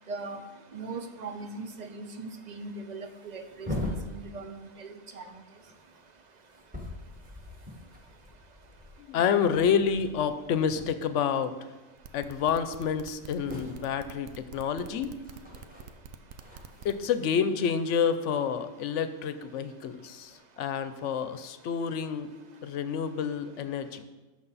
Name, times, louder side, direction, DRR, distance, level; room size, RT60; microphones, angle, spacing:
voice 1, 0.1-0.4 0.7-5.2, right 3 dB, 45° right, 8 dB, 0.6 m, -40 dB
sound 1, 1.2-1.4 1.6-1.7 2.4-2.6 2.9-4.8 5.1-11.4 11.6-12.0 12.4-12.5 12.6-19.0 19.8-20.4, left 1 dB, 5° right, 1.5 m, -43 dB
voice 2, 9.0-11.5 12.1-15.1 16.8-22.3 22.6-24.0, left 7 dB, 70° left, 11 dB, 0.9 m, -28 dB
sound 2, 12.0-16.9, right 6 dB, 90° right, 1.1 m, -46 dB
11.5 x 6.6 x 4.0 m, 1.2 s
omnidirectional pair, 1.4 m